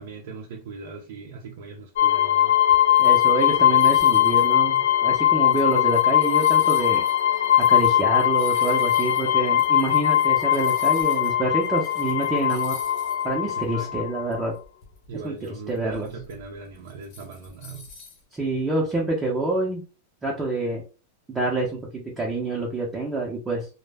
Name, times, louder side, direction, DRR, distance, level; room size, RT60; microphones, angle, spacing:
voice 1, 0.0-2.5 13.6-13.9 15.1-17.9 21.4-21.5, right 4 dB, 60° right, 0.4 m, -39 dB
sound 1, 2.0-14.4, left 11 dB, 70° left, 0.3 m, -20 dB
sound 2, 2.7-11.3 11.6-13.3 13.6-13.7 14.3-18.2, left 5 dB, 40° left, 0.8 m, -47 dB
voice 2, 3.0-7.1 7.6-12.8 13.2-14.6 15.2-15.4 15.7-16.1 18.3-19.8 20.2-20.8 21.3-23.7, right 2 dB, 10° right, 0.5 m, -27 dB
2.0 x 2.0 x 3.3 m
supercardioid pair, 155°, 0 cm